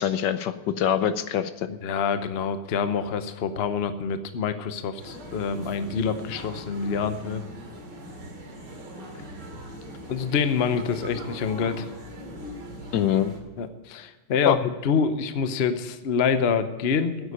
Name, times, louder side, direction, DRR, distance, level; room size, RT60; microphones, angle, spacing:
voice 1, 0.0-1.7 12.9-13.3 14.5-14.6, left 10 dB, 70° left, 12 dB, 1.1 m, -24 dB
voice 2, 1.7-7.4 10.1-11.9 13.6-17.3, left 6 dB, 90° left, 10 dB, 0.5 m, -26 dB
sound 1, 5.0-13.4, equal, 55° right, 2.9 m, -40 dB
10.5 x 8.0 x 9.9 m, 1.2 s
omnidirectional pair, 2.4 m